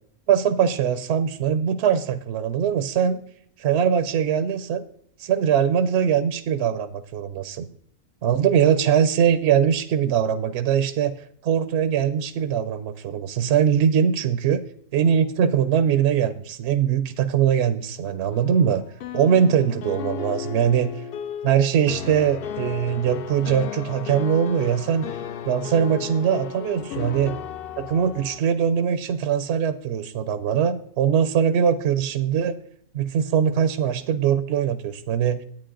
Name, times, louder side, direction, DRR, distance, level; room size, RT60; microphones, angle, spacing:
voice 1, 0.3-3.2 3.6-4.8 5.2-7.7 8.2-11.1 11.4-14.6 14.9-18.8 19.1-21.0 21.4-25.1 25.5-27.4 27.8-32.5 32.9-35.4, right 8 dB, 65° right, 12 dB, 0.7 m, -21 dB
sound 1, 18.3-28.4, left 9 dB, 70° left, 0.5 m, -34 dB
10.5 x 8.8 x 3.8 m, 0.66 s
omnidirectional pair, 1.4 m